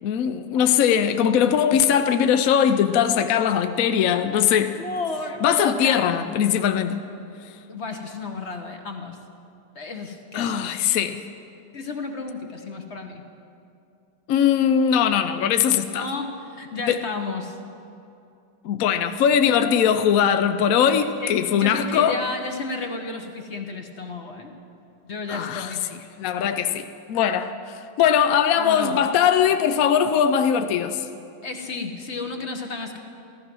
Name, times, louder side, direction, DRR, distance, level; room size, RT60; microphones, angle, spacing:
voice 1, 0.0-4.7 5.4-7.0 10.3-11.2 14.3-16.1 16.9-17.0 18.6-22.2 25.3-25.7 26.2-31.1, left 8 dB, 65° left, 0.9 m, -20 dB
voice 2, 4.8-6.1 7.7-9.2 9.7-10.8 11.7-13.2 15.9-17.6 21.0-24.5 25.0-25.8 28.6-29.0 31.4-33.0, left 3 dB, 45° left, 1.1 m, -32 dB
15.0 x 14.5 x 6.1 m
omnidirectional pair, 2.0 m